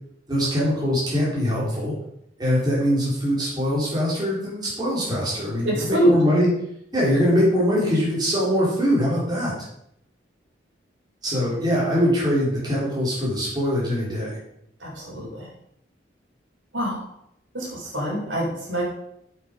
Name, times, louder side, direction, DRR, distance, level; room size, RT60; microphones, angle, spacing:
voice 1, 0.3-1.9 2.4-6.5 6.9-9.6 11.2-14.4, equal, 20° right, -6 dB, 3.7 m, -22 dB
voice 2, 5.6-6.2 14.8-15.5 16.7-17.1 17.5-18.8, right 1 dB, 90° right, -4 dB, 4.4 m, -24 dB
8.1 x 7.5 x 5.2 m, 0.76 s
head